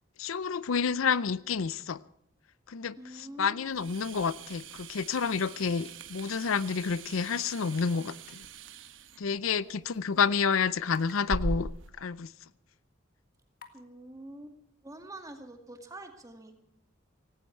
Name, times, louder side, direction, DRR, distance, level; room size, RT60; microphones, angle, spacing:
voice 1, 0.2-2.0 2.7-8.4 9.2-11.7 12.0-12.3, left 6 dB, 80° left, 0.6 m, -29 dB
voice 2, 3.0-3.9 9.5-10.3 13.7-14.6 14.8-16.6, right 1 dB, 15° right, 2.1 m, -47 dB
sound 1, 3.7-11.9, right 2 dB, 65° right, 1.1 m, -41 dB
sound 2, 8.2-8.5 8.8-8.9 10.9-11.2 11.8-11.9 12.6-12.7 13.6-13.8, left 5 dB, 45° left, 1.8 m, -51 dB
17.5 x 17.0 x 4.6 m
head